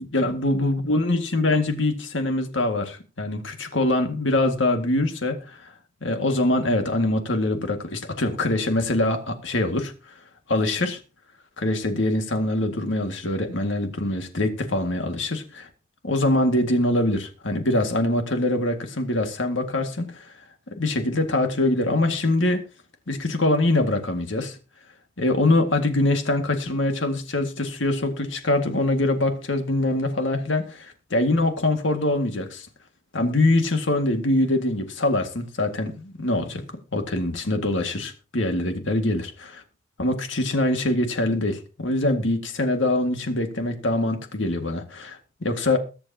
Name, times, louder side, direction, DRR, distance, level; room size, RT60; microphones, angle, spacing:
voice 1, 0.0-5.7 6.0-10.1 10.5-11.0 11.6-15.7 16.0-20.3 20.7-22.6 23.1-24.6 25.2-32.7 33.1-36.6 36.9-39.6 40.0-45.8, left 2 dB, 85° left, 2.0 m, -24 dB
22.0 x 7.9 x 2.9 m
head